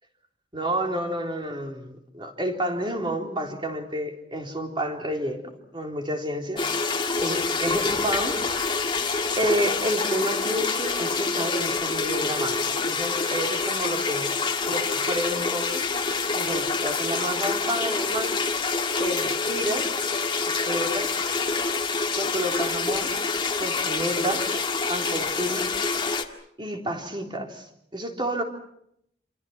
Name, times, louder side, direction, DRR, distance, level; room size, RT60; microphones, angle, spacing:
voice 1, 0.5-6.7 7.2-8.4 9.0-9.1 9.4-14.4 14.7-15.9 16.4-18.4 19.0-19.9 20.6-21.1 22.2-23.1 23.6-24.4 24.9-25.7 26.6-28.4, equal, 30° right, 3 dB, 3.7 m, -30 dB
sound 1, 6.6-26.3, left 4 dB, 30° left, 1.9 m, -26 dB
27.5 x 27.5 x 6.0 m, 0.74 s
head